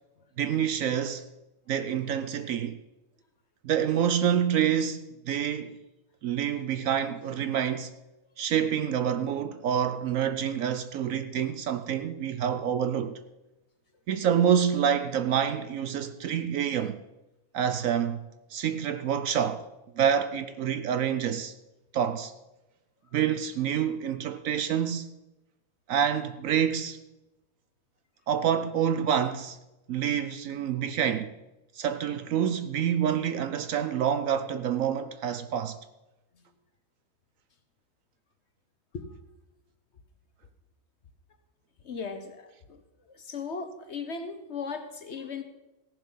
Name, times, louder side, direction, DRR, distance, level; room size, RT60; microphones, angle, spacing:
voice 1, 0.4-1.3 1.7-2.8 3.6-5.8 6.2-7.9 8.4-13.2 14.1-17.0 17.5-18.2 18.5-19.7 20.0-21.5 21.9-22.3 23.1-25.1 25.9-27.0 28.3-29.6 29.9-31.3 31.8-35.8, right 8 dB, 65° right, 0.9 m, -27 dB
voice 2, 41.8-42.8 43.1-45.4, left 5 dB, 50° left, 1.1 m, -37 dB
16.0 x 7.4 x 5.5 m
omnidirectional pair, 1.7 m